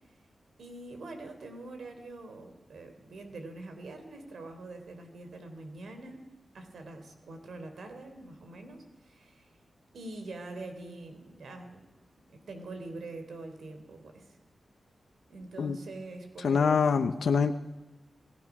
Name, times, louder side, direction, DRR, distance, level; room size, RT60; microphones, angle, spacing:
voice 1, 0.6-6.2 6.5-9.5 9.9-11.8 12.3-14.4 15.3-16.8, right 2 dB, 80° right, 6 dB, 3.5 m, -44 dB
voice 2, 16.4-17.5, left 5 dB, 80° left, 6 dB, 0.9 m, -25 dB
27.5 x 17.5 x 6.1 m, 1.1 s
wide cardioid pair, 145°, 0 cm